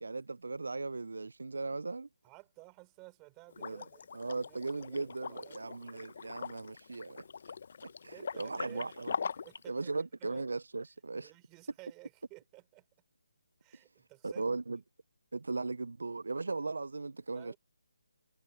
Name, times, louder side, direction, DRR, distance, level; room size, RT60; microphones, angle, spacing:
voice 1, 0.0-2.1 3.6-3.8 4.1-7.3 7.8-9.1 9.7-11.3 14.2-14.8 15.3-17.5, right 3 dB, 85° right, 0.3 m, -38 dB
voice 2, 2.2-4.1 4.4-6.0 8.1-9.0 9.4-10.4 11.1-12.9 13.6-14.4 17.3-17.6, right 26 dB, 15° right, 3.7 m, -55 dB
Liquid, 3.5-9.6, left 6 dB, 45° left, 0.6 m, -42 dB
hypercardioid pair, 170°, 0 cm